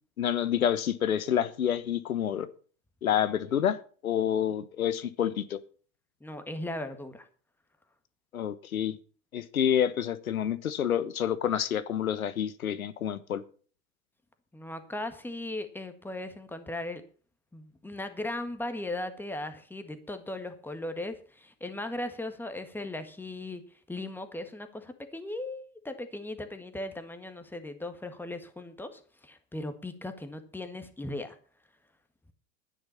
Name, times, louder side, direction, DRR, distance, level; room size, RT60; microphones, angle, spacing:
voice 1, 0.2-2.5 3.0-5.6 8.3-9.0 9.3-13.4, left 9 dB, 90° left, 1.3 m, -28 dB
voice 2, 6.2-7.3 14.5-17.0 17.5-23.6 23.9-31.4, left 1 dB, 5° left, 1.7 m, -38 dB
12.0 x 9.7 x 5.7 m
hypercardioid pair, 115°, 41 cm